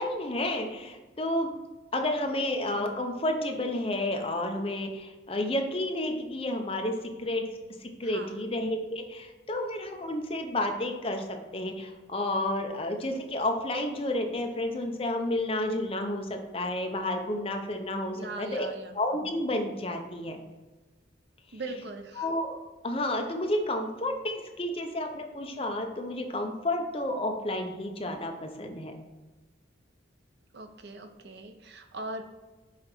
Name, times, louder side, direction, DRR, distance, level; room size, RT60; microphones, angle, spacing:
voice 1, 0.0-1.5 1.9-6.9 7.2-7.4 7.8-18.7 18.9-20.4 22.2-22.5 22.8-29.0, left 1 dB, 30° left, 4 dB, 0.7 m, -31 dB
voice 2, 8.0-8.4 18.2-19.0 21.5-22.3 30.5-32.2, right 2 dB, 60° right, 6 dB, 0.6 m, -40 dB
5.8 x 3.9 x 4.4 m, 1.2 s
head